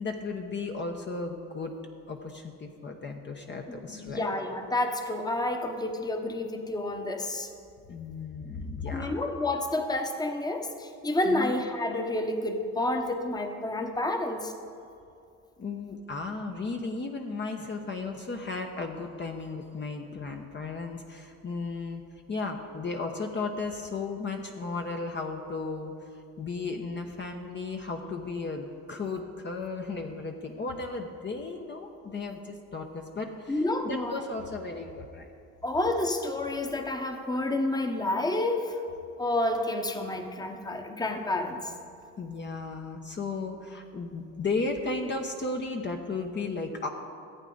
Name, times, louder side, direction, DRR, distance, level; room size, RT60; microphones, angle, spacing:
voice 1, 0.0-1.7 2.1-4.2 7.9-9.2 11.2-11.5 15.6-26.0 26.4-35.3 42.2-46.9, left 3 dB, 30° left, 3 dB, 0.9 m, -35 dB
voice 2, 3.7-7.5 8.9-14.5 33.5-34.2 35.6-38.8 39.2-41.7, left 2 dB, 10° left, 5 dB, 1.1 m, -29 dB
14.5 x 8.3 x 3.9 m, 2.5 s
supercardioid pair, 75°, 35 cm